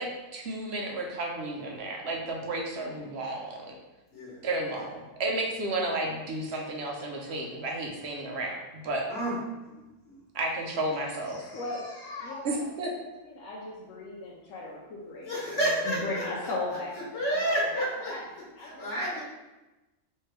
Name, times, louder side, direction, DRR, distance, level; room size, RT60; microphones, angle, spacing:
voice 1, 0.0-3.7 4.4-9.1 10.3-11.4 12.4-12.9, right 2 dB, 60° right, 0 dB, 1.0 m, -32 dB
voice 2, 4.1-4.4 9.1-9.4 9.7-10.2 15.2-16.5 17.1-18.1 18.6-19.2, right 1 dB, 65° left, -6 dB, 1.5 m, -30 dB
voice 3, 11.3-12.9 13.2-15.6 15.8-19.2, left 2 dB, 90° left, -4 dB, 1.1 m, -38 dB
4.5 x 3.3 x 3.2 m, 1.1 s
omnidirectional pair, 1.3 m